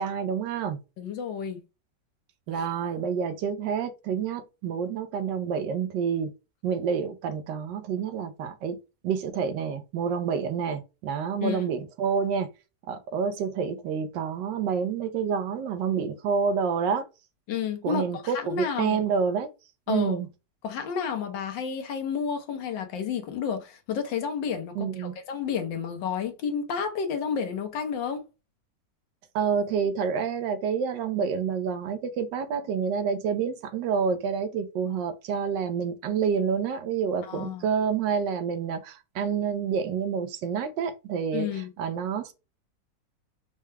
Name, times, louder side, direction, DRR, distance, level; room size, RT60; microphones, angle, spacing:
voice 1, 0.0-0.8 2.5-6.3 6.6-8.8 9.0-12.5 12.9-17.0 17.8-19.5 19.9-20.3 24.7-25.2 29.3-42.3, right 6 dB, 80° right, 1.4 m, -28 dB
voice 2, 1.0-1.6 2.5-2.7 11.4-11.6 17.5-19.0 19.9-20.2 20.6-28.2 37.3-37.6 41.3-41.7, left 7 dB, 90° left, 1.6 m, -31 dB
4.7 x 2.2 x 3.2 m
omnidirectional pair, 1.9 m